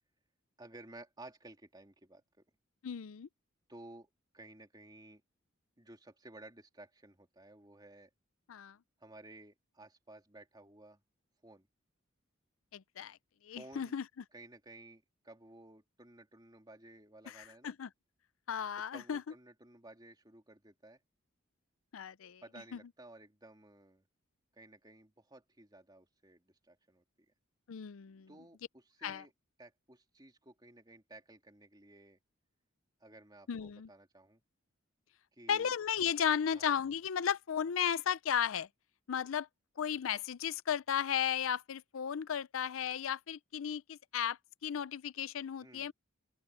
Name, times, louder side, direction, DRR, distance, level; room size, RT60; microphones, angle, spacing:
voice 1, 0.6-2.4 3.7-5.2 5.8-8.1 9.0-11.0 11.4-11.7 13.5-13.9 14.3-17.8 18.9-21.0 22.4-24.0 24.5-27.0 28.3-29.3 29.6-32.2 33.0-34.4 35.3-35.7 36.5-36.7 45.6-45.9, right 2 dB, 20° right, 3.0 m, -55 dB
voice 2, 2.8-3.3 8.5-8.8 12.7-13.2 13.4-14.0 17.3-17.9 18.5-19.2 21.9-22.4 22.7-22.8 27.7-28.3 29.0-29.2 33.5-33.9 35.5-38.7 39.1-39.5 39.8-45.9, left 8 dB, 75° left, 0.5 m, -35 dB
open air
head